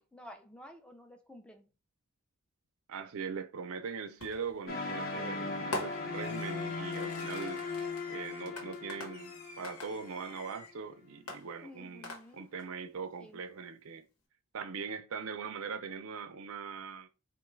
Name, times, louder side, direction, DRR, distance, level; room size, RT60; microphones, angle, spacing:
voice 1, 0.0-1.7 11.6-12.5 13.2-13.4, left 1 dB, 5° left, 0.5 m, -52 dB
voice 2, 2.9-7.7 8.1-14.1 14.5-17.1, right 5 dB, 70° right, 0.5 m, -41 dB
Fireworks, 4.2-4.6 5.7-10.8 11.3-12.6, left 2 dB, 80° left, 1.3 m, -44 dB
sound 1, 4.7-10.6, left 3 dB, 45° left, 0.8 m, -38 dB
4.6 x 2.3 x 3.2 m
head